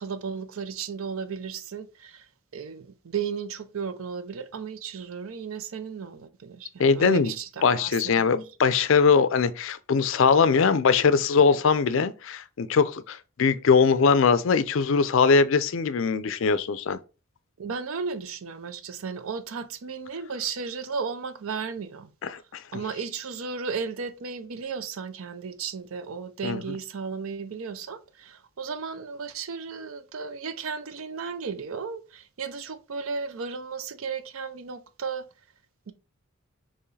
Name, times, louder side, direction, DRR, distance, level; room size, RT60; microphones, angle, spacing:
voice 1, 0.0-2.3 2.5-8.4 17.6-22.1 22.7-35.3 35.9-36.0, right 5 dB, 70° right, 0.5 m, -34 dB
voice 2, 6.8-7.3 7.6-17.0 22.2-22.4 22.7-22.8 26.4-26.6, left 5 dB, 60° left, 0.4 m, -21 dB
4.6 x 3.0 x 3.2 m
head